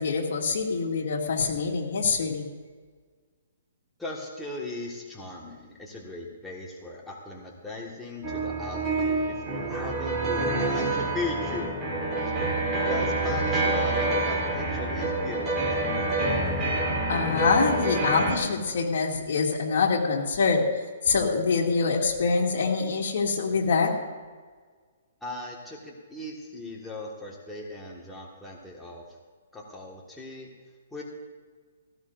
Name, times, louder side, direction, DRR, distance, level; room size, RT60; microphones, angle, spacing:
voice 1, 0.0-2.5 17.1-20.7 21.0-23.9, left 4 dB, 65° left, -1 dB, 2.5 m, -25 dB
voice 2, 4.0-11.8 12.2-12.3 12.8-15.8 25.2-29.0 29.5-30.5 30.9-31.0, left 2 dB, 5° left, -4 dB, 1.7 m, -38 dB
sound 1, 8.2-18.4, right 2 dB, 15° right, 3.7 m, -27 dB
17.5 x 16.0 x 2.6 m, 1.5 s
hypercardioid pair, 155°, 0 cm